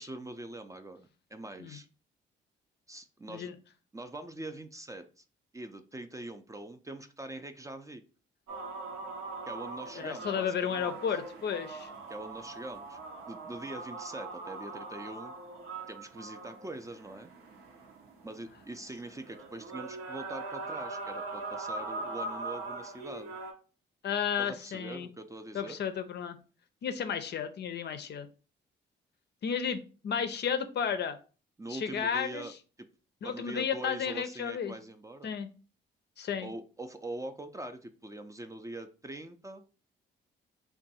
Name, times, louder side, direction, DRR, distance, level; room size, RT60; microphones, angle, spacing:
voice 1, 0.0-1.9 2.9-3.6 3.9-5.2 5.5-8.0 9.5-11.0 12.1-13.0 13.3-15.3 15.9-17.3 18.2-23.4 24.4-25.8 31.6-32.5 32.8-32.9 33.2-35.3 36.4-39.6, right 2 dB, 15° right, 7 dB, 0.4 m, -43 dB
sound 1, 8.5-23.5, right 3 dB, 75° right, 0.8 m, -41 dB
voice 2, 9.9-11.9 24.0-25.1 25.5-26.4 26.8-28.3 29.4-29.8 30.0-31.2 31.7-32.4 33.2-34.7 35.2-35.5 36.2-36.5, left 7 dB, 55° left, 9 dB, 0.5 m, -33 dB
2.5 x 2.3 x 4.0 m, 0.36 s
supercardioid pair, 60°, 21 cm